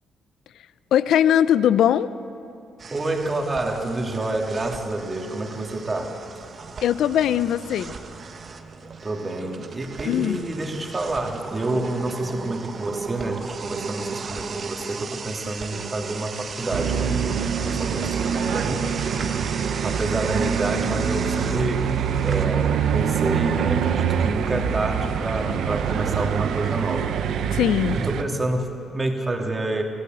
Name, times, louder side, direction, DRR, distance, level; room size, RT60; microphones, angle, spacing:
voice 1, 0.9-2.1 6.8-7.9 10.0-10.4 27.5-28.0, left 10 dB, 75° left, 15 dB, 0.6 m, -20 dB
sound 1, 2.8-22.5, right 4 dB, 45° right, 1.4 m, -36 dB
voice 2, 2.9-6.2 9.0-17.4 17.6-18.9 19.8-21.9 22.2-27.1 27.9-29.8, right 2 dB, 25° right, 2 dB, 2.8 m, -28 dB
sound 2, 16.7-28.2, right 8 dB, 75° right, 1.1 m, -25 dB
25.0 x 15.0 x 8.0 m, 2.7 s
cardioid pair, 90°, 0 cm